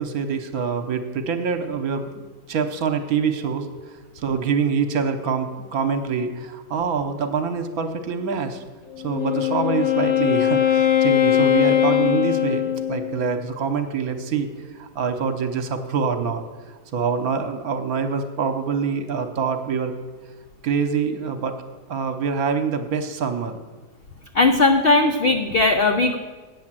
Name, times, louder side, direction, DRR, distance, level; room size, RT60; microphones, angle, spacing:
voice 1, 0.0-2.1 2.5-3.7 4.1-8.6 9.0-14.5 14.7-16.4 16.9-19.9 20.6-21.6 21.9-23.6, right 6 dB, 65° right, 8 dB, 1.3 m, -25 dB
Wind instrument woodwind instrument, 8.9-13.3, left 11 dB, 55° left, 0.8 m, -20 dB
voice 2, 24.3-26.2, left 2 dB, 80° left, 6 dB, 0.5 m, -18 dB
8.8 x 7.5 x 7.4 m, 1.3 s
omnidirectional pair, 1.8 m